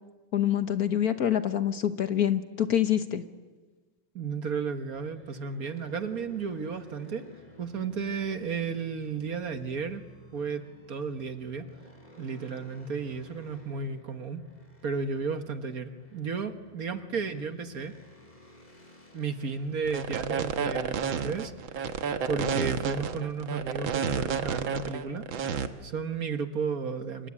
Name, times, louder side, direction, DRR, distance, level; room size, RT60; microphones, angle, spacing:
voice 1, 0.3-3.2, left 10 dB, 55° left, 10 dB, 1.5 m, -26 dB
voice 2, 4.2-7.3 7.6-10.0 10.3-10.6 10.9-11.6 12.2-14.4 14.8-17.9 19.1-21.5 21.9-25.3 25.8-27.3, right 5 dB, 50° right, 8 dB, 1.8 m, -33 dB
sound 1, 4.9-22.3, left 1 dB, 20° left, 3.9 m, -54 dB
sound 2, 19.8-25.7, right 6 dB, 85° right, 2.1 m, -30 dB
27.0 x 25.0 x 8.7 m, 1.3 s
omnidirectional pair, 2.1 m